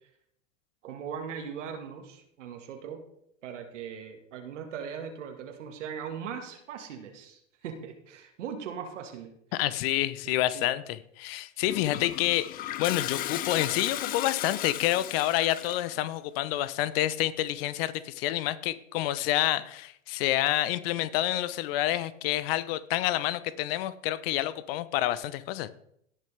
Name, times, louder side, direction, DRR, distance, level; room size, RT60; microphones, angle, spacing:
voice 1, 0.8-3.0 3.4-9.3 10.3-10.6, right 7 dB, 65° right, 4 dB, 2.0 m, -39 dB
voice 2, 9.5-25.7, left 14 dB, 50° left, 16 dB, 0.8 m, -28 dB
Toilet flush, 11.6-15.9, left 13 dB, 25° left, 0.5 m, -35 dB
18.0 x 6.7 x 3.4 m, 0.72 s
hypercardioid pair, 100°, 38 cm